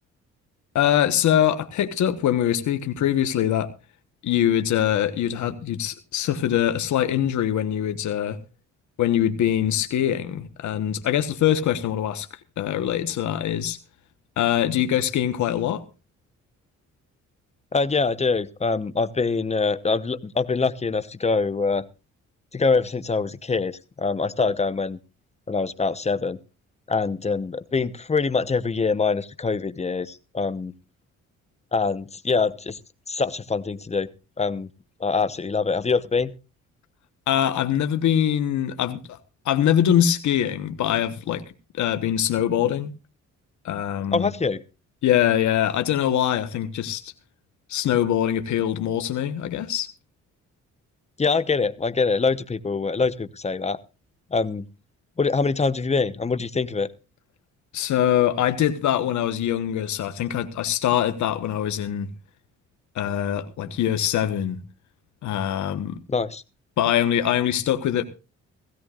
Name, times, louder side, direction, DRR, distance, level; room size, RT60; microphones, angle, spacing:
voice 1, 0.7-3.7 4.2-8.4 9.0-12.3 12.6-13.8 14.4-15.8 37.3-39.2 39.4-41.4 41.8-42.9 43.6-44.3 45.0-47.0 47.7-49.9 57.7-62.1 62.9-64.6 65.2-66.0 66.8-68.0, left 10 dB, 70° left, 1.3 m, -23 dB
voice 2, 17.7-21.8 22.5-25.0 25.5-26.4 26.9-30.7 31.7-32.8 33.1-34.1 34.4-34.7 35.0-36.3 44.1-44.6 51.2-53.8 54.3-54.7 55.2-56.9 66.1-66.4, left 4 dB, 20° left, 1.0 m, -24 dB
17.0 x 16.0 x 2.5 m
cardioid pair, 90°, 30 cm